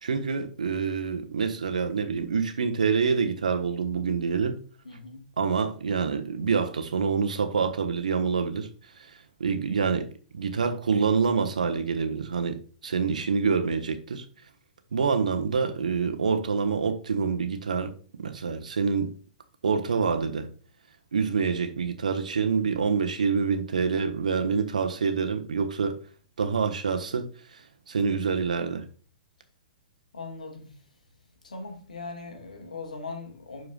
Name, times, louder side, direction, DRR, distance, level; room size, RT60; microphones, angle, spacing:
voice 1, 0.0-4.6 5.4-8.7 9.0-9.1 9.4-10.1 10.3-12.6 12.8-14.2 14.9-17.9 18.2-19.1 19.6-20.5 21.1-26.0 26.4-27.6 27.9-28.8, right 5 dB, 75° right, 1.2 m, -26 dB
voice 2, 4.8-5.3 13.0-13.1 30.1-30.7 31.4-33.7, left 3 dB, 75° left, 2.0 m, -39 dB
12.0 x 4.7 x 2.4 m
figure-of-eight pair, 110°, 4 cm